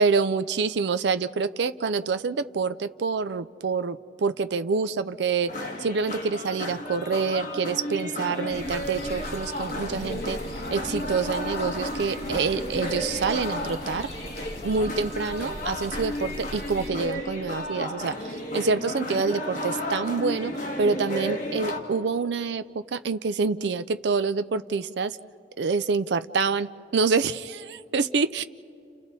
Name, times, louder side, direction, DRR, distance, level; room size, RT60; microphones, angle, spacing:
voice 1, 0.0-5.5 5.8-10.4 10.7-14.1 14.6-20.5 20.8-25.2 25.6-28.4, right 4 dB, 80° right, 11 dB, 0.5 m, -27 dB
sound 1, 5.5-21.8, left 1 dB, 45° left, 2.1 m, -33 dB
sound 2, 8.5-16.9, equal, 60° left, 7.2 m, -40 dB
30.0 x 30.0 x 4.1 m, 2.6 s
head